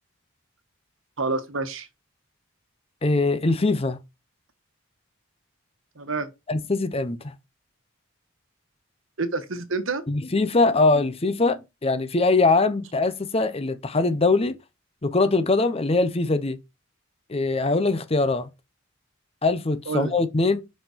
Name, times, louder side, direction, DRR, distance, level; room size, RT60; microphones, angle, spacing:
voice 1, 1.2-1.9 6.0-6.3 9.2-10.0 19.9-20.1, right 3 dB, 70° right, 1.2 m, -28 dB
voice 2, 3.0-4.0 6.5-7.3 10.1-14.6 15.0-16.6 17.3-18.5 19.4-20.6, left 3 dB, 30° left, 0.6 m, -22 dB
5.5 x 5.4 x 5.0 m
head